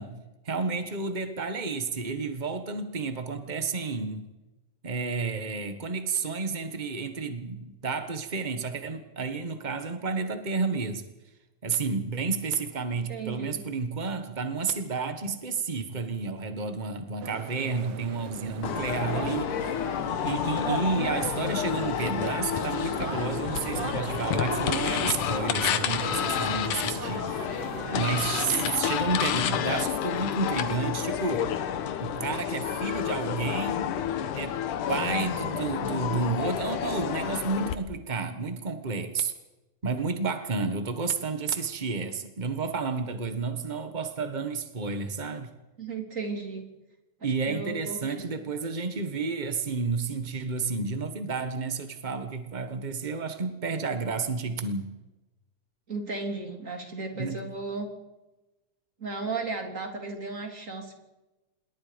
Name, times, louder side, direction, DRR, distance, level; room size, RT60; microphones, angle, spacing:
voice 1, 0.0-4.3 4.8-11.0 11.6-19.8 20.2-27.5 27.9-31.5 32.0-34.0 34.3-39.3 39.8-45.5 47.2-55.0 57.1-57.4, right 4 dB, 85° right, 0.4 m, -31 dB
voice 2, 13.1-13.6 45.8-46.7 47.2-48.3 55.9-57.9 59.0-61.0, right 3 dB, 25° right, 3.6 m, -35 dB
sound 1, 17.2-28.7, right 9 dB, 70° right, 2.2 m, -39 dB
sound 2, 18.6-37.7, left 9 dB, 85° left, 2.8 m, -30 dB
27.0 x 21.5 x 5.2 m
omnidirectional pair, 3.5 m